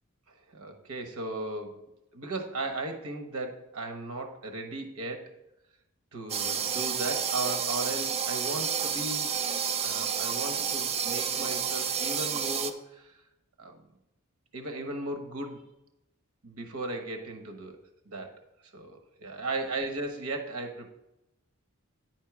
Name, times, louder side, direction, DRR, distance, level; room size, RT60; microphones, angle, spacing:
voice 1, 0.5-1.8 2.1-5.3 6.1-9.4 9.8-13.2 13.6-13.8 14.5-15.6 16.4-17.8 18.1-18.3 18.7-20.9, right 2 dB, 80° right, 5 dB, 1.1 m, -36 dB
sound 1, 6.3-12.7, right 7 dB, 30° right, 0.4 m, -30 dB
9.7 x 4.5 x 4.8 m, 0.91 s
head